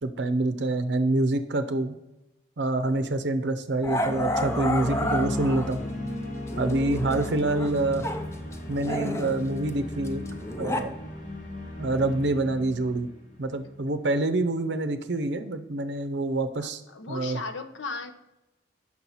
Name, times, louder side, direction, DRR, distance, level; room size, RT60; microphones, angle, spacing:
voice 1, 0.0-2.0 2.6-5.8 6.6-8.1 8.7-10.2 10.6-11.0 11.8-13.1 13.4-16.8 17.1-17.4, right 2 dB, 65° right, 10 dB, 0.6 m, -26 dB
Growling, 2.9-3.1 3.8-5.9 6.5-8.3 8.5-10.8, equal, 15° left, 0.4 m, -31 dB
sound 1, 3.9-13.9, left 1 dB, 40° left, 1.4 m, -36 dB
voice 2, 16.6-18.1, left 4 dB, 80° left, 9 dB, 0.7 m, -37 dB
6.0 x 4.5 x 5.5 m, 0.96 s
head